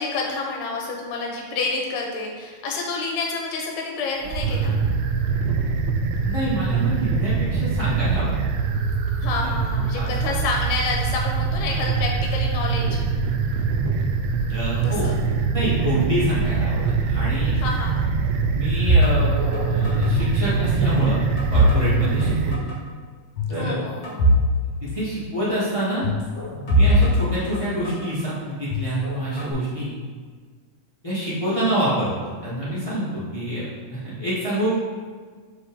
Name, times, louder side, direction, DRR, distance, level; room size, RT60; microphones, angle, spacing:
voice 1, 0.0-4.8 9.2-12.9 14.8-15.1 17.5-18.1 23.6-24.4, left 3 dB, 80° left, 0 dB, 2.5 m, -28 dB
sound 1, 4.2-22.6, right 5 dB, 80° right, 1.8 m, -23 dB
voice 2, 6.2-8.4 9.4-9.5 9.9-10.4 14.5-15.1 15.5-17.5 18.4-19.4 19.6-21.2 21.5-22.8 23.5-23.8 24.8-26.1 26.7-29.9 31.0-34.7, right 1 dB, 55° left, -11 dB, 0.3 m, -27 dB
sound 2, 18.9-20.4 20.7-22.3 22.5-22.8 23.4-24.5 24.7-24.8 26.0-28.1 28.7-29.5, equal, 40° left, 2.0 m, -21 dB
5.7 x 5.6 x 3.5 m, 1.5 s
omnidirectional pair, 3.7 m